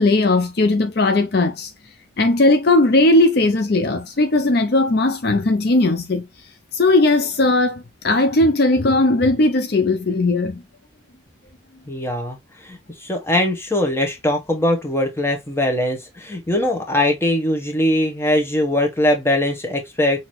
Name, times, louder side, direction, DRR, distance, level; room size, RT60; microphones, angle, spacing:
voice 1, 0.0-1.7 2.2-6.3 6.7-10.6, left 2 dB, 50° left, 0.5 m, -17 dB
voice 2, 11.9-20.2, left 1 dB, 15° left, 1.1 m, -21 dB
5.9 x 2.9 x 3.1 m
head